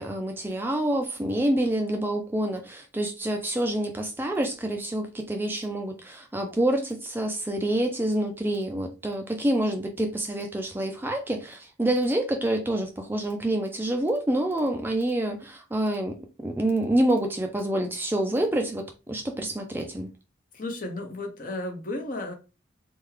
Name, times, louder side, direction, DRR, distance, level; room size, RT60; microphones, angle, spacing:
voice 1, 0.0-20.1, right 1 dB, 10° right, 0.3 m, -27 dB
voice 2, 20.5-22.3, left 2 dB, 45° left, 0.8 m, -33 dB
3.5 x 2.2 x 3.1 m
head